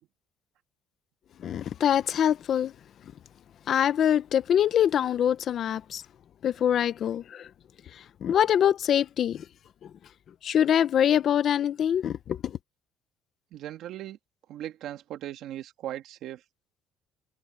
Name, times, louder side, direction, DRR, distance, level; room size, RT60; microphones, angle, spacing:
voice 1, 1.4-2.7 3.0-3.1 3.7-6.0 6.4-7.5 7.9-9.5 9.8-9.9 10.4-12.6, left 9 dB, 50° left, 0.9 m, -24 dB
voice 2, 13.5-14.2 14.5-16.4, right 12 dB, 65° right, 1.9 m, -38 dB
cardioid pair, 130°, 0 cm